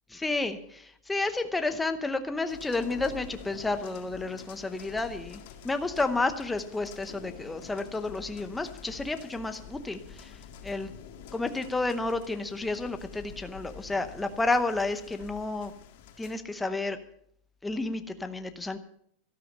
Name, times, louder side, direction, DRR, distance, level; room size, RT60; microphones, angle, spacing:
voice 1, 0.1-5.4 5.6-10.3 10.6-10.9 11.3-15.7 16.2-17.0 17.6-18.8, left 3 dB, 5° left, 8 dB, 0.8 m, -31 dB
sound 1, 2.5-16.4, left 7 dB, 65° left, 2.0 m, -47 dB
13.5 x 12.5 x 5.4 m, 0.68 s
supercardioid pair, 160°, 0 cm